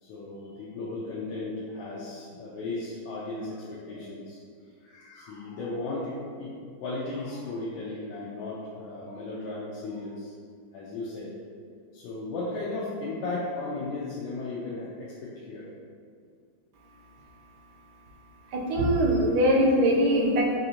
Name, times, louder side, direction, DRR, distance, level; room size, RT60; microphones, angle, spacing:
voice 1, 0.0-4.4 4.8-6.5 6.8-10.3 10.7-11.3 11.9-15.7, left 2 dB, 90° left, -6 dB, 1.3 m, -35 dB
voice 2, 18.5-20.6, equal, 75° right, -2 dB, 1.0 m, -22 dB
4.1 x 2.5 x 2.8 m, 2.1 s
omnidirectional pair, 2.0 m